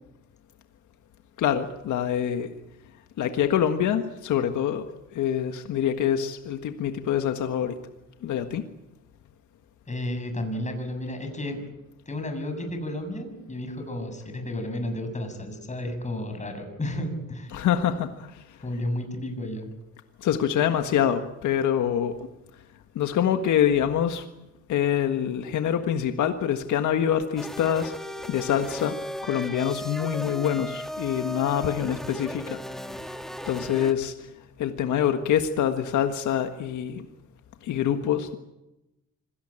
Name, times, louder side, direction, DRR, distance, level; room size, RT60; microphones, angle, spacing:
voice 1, 1.4-2.5 3.2-4.8 5.1-7.8 8.2-8.6 17.5-18.6 20.2-22.2 22.9-24.3 24.7-27.9 28.3-32.6 33.5-34.1 34.6-37.0 37.6-38.4, left 9 dB, 75° left, 7 dB, 1.6 m, -25 dB
voice 2, 9.9-11.7 12.1-17.5 18.6-19.7, left 1 dB, 25° left, 6 dB, 7.2 m, -32 dB
sound 1, 27.4-33.9, equal, ahead, 1.7 m, -36 dB
25.5 x 17.5 x 8.9 m, 0.96 s
cardioid pair, 90°, 30 cm